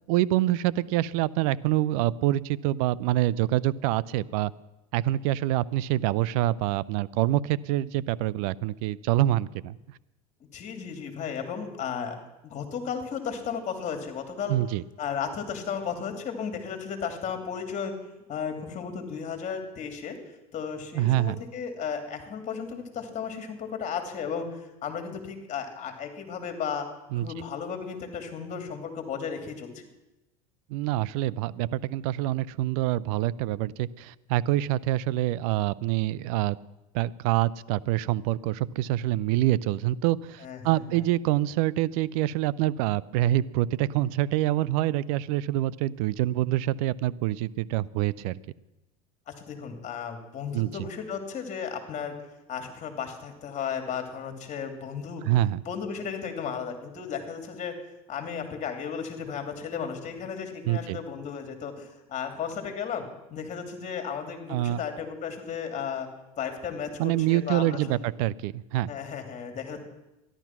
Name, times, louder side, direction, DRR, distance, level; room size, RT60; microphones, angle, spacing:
voice 1, 0.1-4.5 4.9-9.8 14.5-14.8 20.9-21.4 27.1-27.3 30.7-36.6 36.9-48.4 50.5-50.7 55.2-55.6 60.7-61.0 64.5-64.8 67.0-68.9, right 15 dB, 70° right, 20 dB, 0.5 m, -26 dB
voice 2, 10.5-14.6 15.0-17.9 18.3-20.2 20.5-26.9 27.1-29.7 40.4-41.0 49.3-52.1 52.5-55.3 55.7-57.8 58.1-66.1 66.4-68.0 68.9-69.8, left 7 dB, 40° left, 6 dB, 2.8 m, -34 dB
13.5 x 11.5 x 6.0 m, 0.97 s
supercardioid pair, 100°, 19 cm